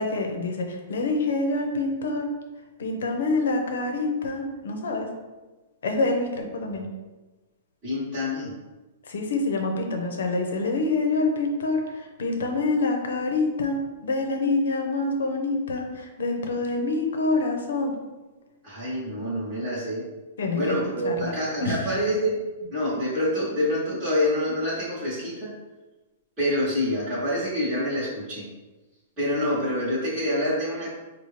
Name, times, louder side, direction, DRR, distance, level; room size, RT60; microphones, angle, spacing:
voice 1, 0.0-2.3 2.8-5.1 5.8-6.9 9.1-18.0 20.4-20.8 21.0-21.3 21.6-21.8, left 3 dB, 85° left, 3 dB, 0.8 m, -26 dB
voice 2, 7.8-8.5 18.6-20.0 20.5-22.4 22.7-25.5 26.4-28.5 29.2-30.9, left 1 dB, 10° right, -14 dB, 1.1 m, -26 dB
5.7 x 2.3 x 3.2 m, 1.2 s
hypercardioid pair, 180°, 0 cm